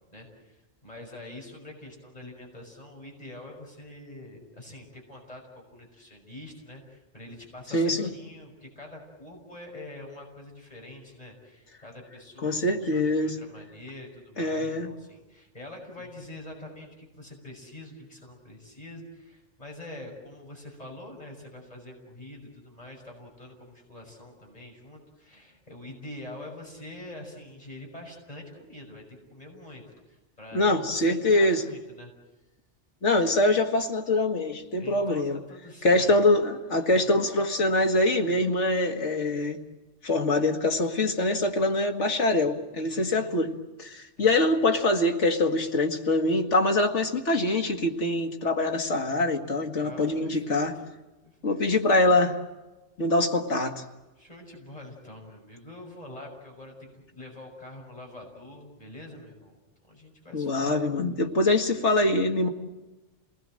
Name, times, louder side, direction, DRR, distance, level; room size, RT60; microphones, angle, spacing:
voice 1, 0.1-32.1 34.8-36.1 42.9-43.4 44.2-44.5 49.8-50.8 51.2-51.6 54.2-60.9, left 1 dB, 35° left, 0 dB, 6.2 m, -45 dB
voice 2, 7.7-8.1 12.4-13.4 14.4-14.9 30.5-31.6 33.0-35.4 35.8-39.6 40.0-43.5 43.8-50.7 51.4-52.4 53.0-53.8 60.3-62.5, left 2 dB, 85° left, 3 dB, 2.2 m, -24 dB
28.5 x 20.0 x 7.6 m, 1.1 s
omnidirectional pair, 1.2 m